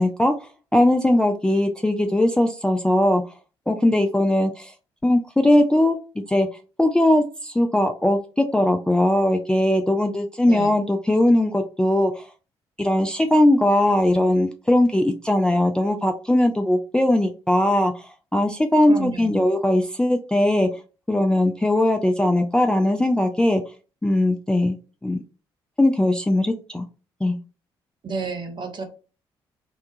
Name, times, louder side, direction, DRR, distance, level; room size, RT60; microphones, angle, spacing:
voice 1, 0.0-3.2 3.7-4.7 5.0-6.0 6.3-6.5 6.8-12.3 12.8-18.0 18.3-20.7 21.1-23.6 24.0-24.8 25.0-25.2 25.8-26.9 27.2-27.4, left 1 dB, 5° left, 4 dB, 0.3 m, -20 dB
voice 2, 10.4-10.7 18.8-19.5 28.0-28.8, right 4 dB, 35° right, 7 dB, 0.7 m, -31 dB
2.7 x 2.2 x 2.5 m, 0.34 s
figure-of-eight pair, 40°, 13 cm